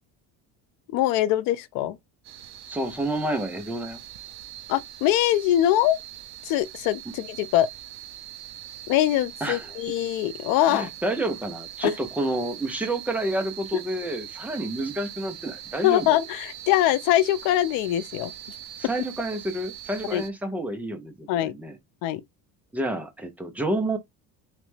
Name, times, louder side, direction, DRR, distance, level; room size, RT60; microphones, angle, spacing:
voice 1, 0.9-2.0 4.7-6.0 6.4-7.7 8.9-10.9 15.8-18.3 20.1-20.2 21.3-21.5 22.0-22.2, left 13 dB, 75° left, 0.6 m, -23 dB
sound 1, 2.2-20.3, right 12 dB, 50° right, 0.5 m, -42 dB
voice 2, 2.7-4.0 9.4-9.7 10.7-16.1 18.8-21.8 22.7-24.0, right 1 dB, 5° right, 0.4 m, -29 dB
3.3 x 3.0 x 3.2 m
cardioid pair, 175°, 34 cm